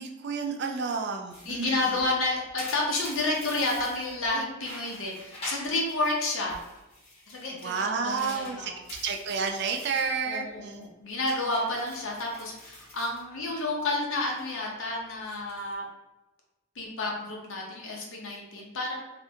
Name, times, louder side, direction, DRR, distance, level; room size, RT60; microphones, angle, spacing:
voice 1, 0.0-1.9 7.6-10.9, right 5 dB, 50° right, 3 dB, 0.3 m, -31 dB
sound 1, 1.3-4.3 4.6-6.2 6.5-10.1 10.5-10.8 11.2-13.8 14.1-14.5 15.1-15.7, left 1 dB, 30° left, 0.8 m, -45 dB
voice 2, 1.5-6.6 7.3-8.8 10.2-15.8 16.8-19.0, left 2 dB, 65° left, -1 dB, 0.6 m, -30 dB
3.2 x 2.5 x 2.7 m, 1.0 s
head